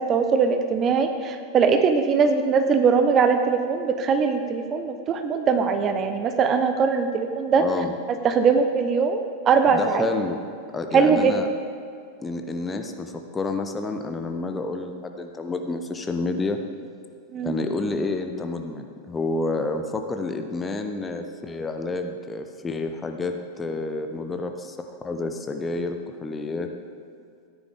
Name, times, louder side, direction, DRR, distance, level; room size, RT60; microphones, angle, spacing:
voice 1, 0.0-7.6 8.2-10.1 10.9-11.4 17.3-17.5, right 5 dB, 30° right, 7 dB, 0.7 m, -21 dB
voice 2, 7.6-7.9 9.7-10.4 10.7-11.5 12.2-16.6 17.4-26.7, left 3 dB, 15° left, 5 dB, 0.8 m, -29 dB
13.5 x 9.8 x 3.6 m, 2.4 s
figure-of-eight pair, 90°, 0 cm